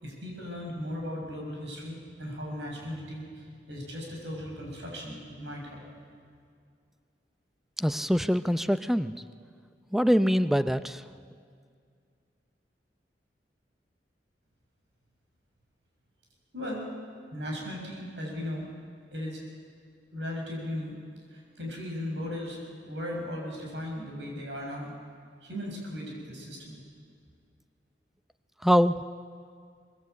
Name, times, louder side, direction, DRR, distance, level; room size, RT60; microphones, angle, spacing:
voice 1, 0.0-5.8 16.5-16.9 17.3-18.7 19.1-19.4 20.1-21.0 21.3-24.9 25.4-26.8, left 1 dB, 85° right, -1 dB, 7.3 m, -37 dB
voice 2, 7.8-9.1 9.9-11.0 28.6-29.0, equal, ahead, 11 dB, 0.6 m, -24 dB
24.0 x 21.0 x 8.4 m, 2.2 s
head